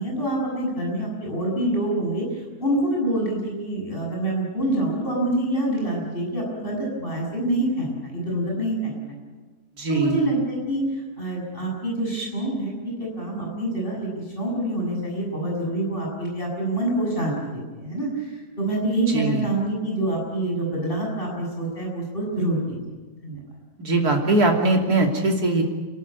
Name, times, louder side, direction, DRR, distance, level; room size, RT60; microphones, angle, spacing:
voice 1, 0.0-9.1 9.9-12.7 13.0-22.8 23.2-23.4, right 1 dB, 35° left, -2 dB, 7.6 m, -26 dB
voice 2, 9.8-10.3 19.1-19.5 23.8-25.6, right 2 dB, 80° right, 1 dB, 3.5 m, -21 dB
30.0 x 12.5 x 9.5 m, 1.3 s
omnidirectional pair, 1.6 m